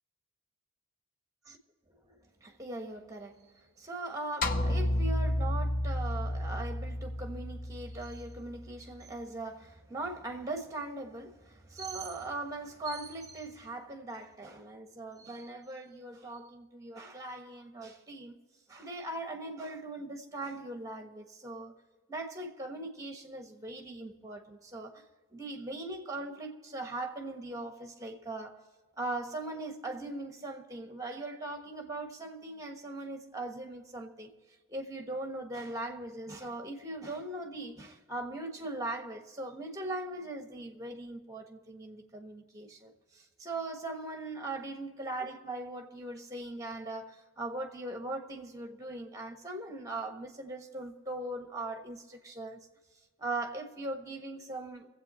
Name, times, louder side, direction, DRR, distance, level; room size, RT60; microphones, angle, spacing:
voice 1, 2.0-18.4 18.7-21.7 22.1-25.0 25.3-28.6 29.0-34.3 34.7-52.6 53.2-54.9, right 2 dB, 15° right, 1.3 m, -40 dB
sound 1, 4.4-8.8, left 1 dB, 40° left, 0.8 m, -31 dB
23.5 x 8.2 x 4.3 m
head